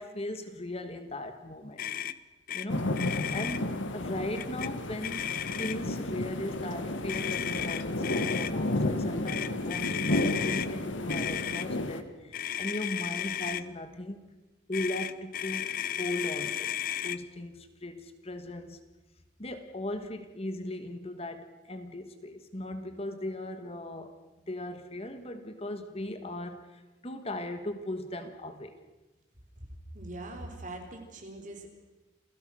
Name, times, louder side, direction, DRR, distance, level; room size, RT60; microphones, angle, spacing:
voice 1, 0.0-1.9 2.5-2.9 3.3-14.2 14.7-16.7 17.0-18.8 19.4-24.2 24.5-28.8, left 1 dB, 30° left, 8 dB, 1.5 m, -38 dB
Motor vehicle (road), 1.8-2.2 2.5-2.7 2.9-3.6 4.4-4.7 5.0-5.9 7.1-8.5 9.3-10.7 11.1-11.7 12.3-13.6 14.7-17.2, left 10 dB, 50° left, 0.7 m, -34 dB
sound 1, 2.7-12.0, left 1 dB, 85° left, 1.6 m, -32 dB
voice 2, 29.9-31.7, right 2 dB, 45° right, 3 dB, 4.0 m, -42 dB
28.5 x 17.0 x 6.3 m, 1.1 s
head